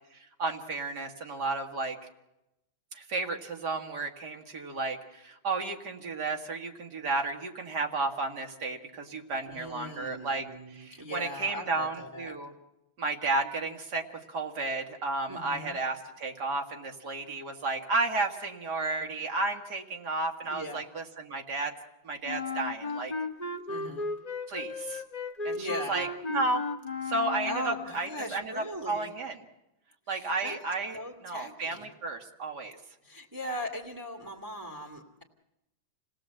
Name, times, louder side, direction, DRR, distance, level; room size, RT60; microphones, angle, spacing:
voice 1, 0.1-2.0 2.9-10.4 10.7-12.5 13.0-21.7 22.0-23.1 24.5-25.0 25.4-26.6 27.0-29.4 30.1-32.8, right 3 dB, 55° right, 4 dB, 2.5 m, -33 dB
voice 2, 9.5-12.4 15.3-15.8 20.4-20.8 23.7-24.0 25.5-26.1 27.4-29.1 30.1-30.6 30.9-31.9 33.0-35.2, equal, 10° right, 0 dB, 2.2 m, -39 dB
Wind instrument woodwind instrument, 22.2-28.0, left 3 dB, 25° left, 1.1 m, -35 dB
28.5 x 18.5 x 7.7 m, 0.92 s
omnidirectional pair, 2.1 m